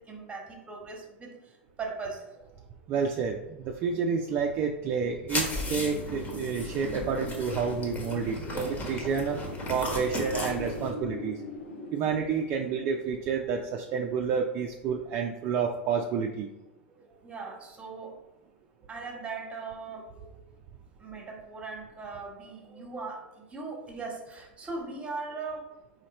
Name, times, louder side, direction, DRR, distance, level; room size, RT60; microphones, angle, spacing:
voice 1, 0.0-1.4 1.8-2.5 16.9-18.2 18.9-20.3 21.0-25.7, right 4 dB, 15° right, 1 dB, 1.2 m, -39 dB
voice 2, 2.9-9.4 9.7-11.4 11.9-16.5, right 6 dB, 40° right, 2 dB, 0.4 m, -29 dB
sound 1, 5.3-10.9, left 1 dB, 30° left, 1.2 m, -35 dB
Wind, 5.5-14.2, left 1 dB, 70° left, 0.7 m, -42 dB
4.1 x 2.8 x 4.1 m, 0.99 s
hypercardioid pair, 95°, 6 cm